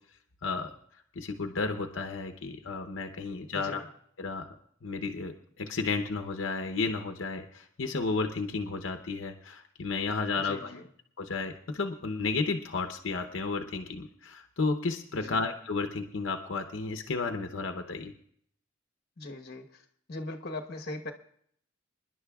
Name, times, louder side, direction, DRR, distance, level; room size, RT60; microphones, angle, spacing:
voice 1, 0.4-3.8 4.2-4.5 4.8-10.7 11.2-18.1, left 4 dB, 75° left, 6 dB, 0.8 m, -33 dB
voice 2, 3.3-3.8 10.4-10.9 15.1-15.4 19.2-19.8 20.1-21.1, left 2 dB, 55° left, 3 dB, 1.2 m, -40 dB
27.0 x 11.0 x 2.4 m, 0.66 s
head